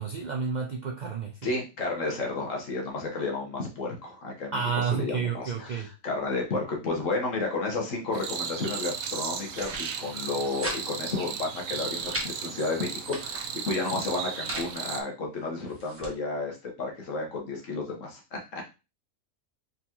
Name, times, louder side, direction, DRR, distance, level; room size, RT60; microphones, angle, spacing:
voice 1, 0.0-1.4 4.5-5.9, right 6 dB, 60° right, 2 dB, 0.4 m, -30 dB
voice 2, 1.4-18.7, left 3 dB, 70° left, 1 dB, 1.5 m, -32 dB
sound 1, 8.1-15.0, right 7 dB, 80° right, 1.0 m, -35 dB
sound 2, 9.4-9.8 10.2-10.8 11.1-11.2 11.6-12.3 12.8-13.5 14.1-14.7 15.4-16.1, equal, 10° right, 1.1 m, -38 dB
4.1 x 3.6 x 2.8 m, 0.29 s
omnidirectional pair, 1.4 m